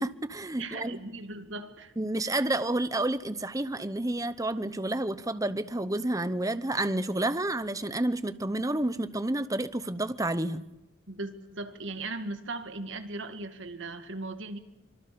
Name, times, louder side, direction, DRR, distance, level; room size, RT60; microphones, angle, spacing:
voice 1, 0.0-1.0 2.0-10.7, right 1 dB, 15° right, 0.9 m, -30 dB
voice 2, 0.6-1.9 2.2-2.4 11.1-14.6, right 2 dB, 70° right, 2.1 m, -38 dB
25.0 x 24.0 x 6.9 m
head